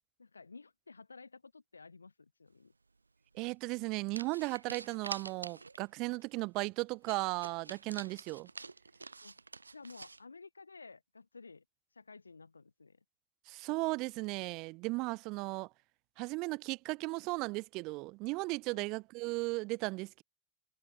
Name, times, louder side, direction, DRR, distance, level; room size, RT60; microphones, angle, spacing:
voice 1, 0.2-2.7 8.0-8.1 9.2-9.4 9.7-11.6 11.9-13.0 18.7-18.9, left 4 dB, 80° left, 0.8 m, -53 dB
voice 2, 3.3-8.5 13.5-15.7 16.2-20.2, right 24 dB, 40° right, 1.0 m, -36 dB
sound 1, 3.3-3.5 4.1-5.9 6.2-6.3 6.6-6.7 7.0-10.2, right 4 dB, 80° right, 0.3 m, -47 dB
figure-of-eight pair, 90°, 0 cm